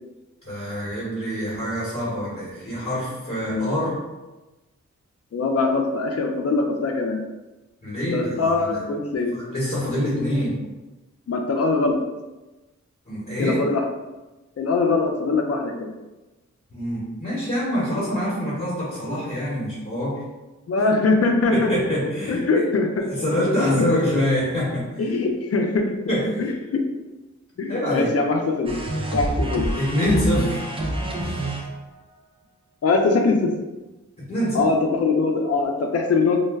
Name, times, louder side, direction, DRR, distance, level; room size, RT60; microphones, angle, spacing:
voice 1, 0.4-3.9 7.8-8.8 9.3-10.6 13.1-13.6 16.7-20.2 21.5-22.6 23.1-25.1 26.1-26.4 27.7-28.1 29.4-29.5 29.8-30.7 31.2-31.4 34.3-34.6, equal, 30° left, -8 dB, 1.0 m, -25 dB
voice 2, 5.3-7.2 8.1-9.4 11.3-12.0 13.4-13.8 14.6-15.9 20.7-21.7 22.3-23.0 23.5-23.9 25.0-25.9 26.4-26.8 27.6-28.8 29.1-29.7 32.8-33.5 34.5-36.4, left 3 dB, 55° left, 3 dB, 0.5 m, -22 dB
sound 1, 28.7-32.0, right 1 dB, 20° right, 0.4 m, -27 dB
2.3 x 2.1 x 3.4 m, 1.1 s
cardioid pair, 55°, 30 cm